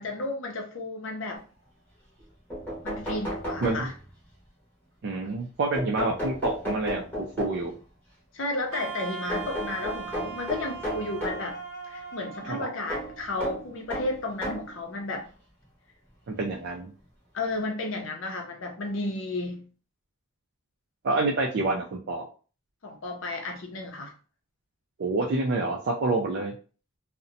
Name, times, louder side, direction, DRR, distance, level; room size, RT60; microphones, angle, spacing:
voice 1, 0.0-1.4 2.8-3.9 8.3-11.6 11.9-15.3 17.3-19.6 22.8-24.1, left 2 dB, 60° left, 0.6 m, -33 dB
sound 1, 2.2-2.3 2.5-4.3 5.7-7.8 9.3-11.5 12.9-14.8 15.6-15.7 17.1-17.2 17.5-17.6, equal, 10° left, 0.8 m, -34 dB
voice 2, 5.0-7.7 12.5-12.7 16.3-16.9 21.0-22.2 25.0-26.5, right 2 dB, 50° right, 0.3 m, -28 dB
Wind instrument woodwind instrument, 8.7-13.8, right 6 dB, 85° right, 0.7 m, -39 dB
2.6 x 2.1 x 2.6 m
head